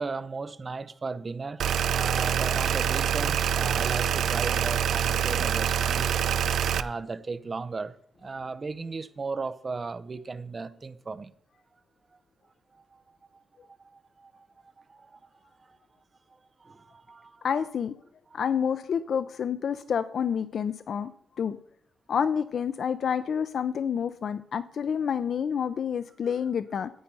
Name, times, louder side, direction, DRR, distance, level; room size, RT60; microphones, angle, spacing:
voice 1, 0.0-11.3 12.7-13.0 13.3-13.4 13.8-14.5 14.8-15.3 15.6-15.8 16.3-17.7 18.3-18.4, right 4 dB, 25° right, 0.6 m, -36 dB
sound 1, 1.6-6.8, right 8 dB, 75° right, 0.5 m, -26 dB
voice 2, 17.4-17.9 18.3-21.1 21.4-21.6 22.1-26.9, left 7 dB, 50° left, 0.4 m, -28 dB
10.5 x 8.8 x 5.4 m
wide cardioid pair, 170°, 0 cm